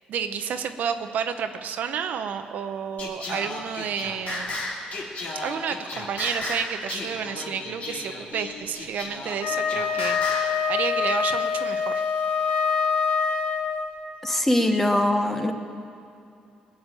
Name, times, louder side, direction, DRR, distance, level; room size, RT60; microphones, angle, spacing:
voice 1, 0.1-4.6 5.3-12.0, right 7 dB, 65° right, 8 dB, 0.8 m, -30 dB
Singing, 3.0-10.6, left 2 dB, 50° left, 3.0 m, -34 dB
Wind instrument woodwind instrument, 9.3-14.0, left 6 dB, 70° left, 1.3 m, -25 dB
voice 2, 14.2-15.5, left 1 dB, 10° left, 6 dB, 1.1 m, -22 dB
20.5 x 7.3 x 9.0 m, 2.6 s
cardioid pair, 125°, 3 cm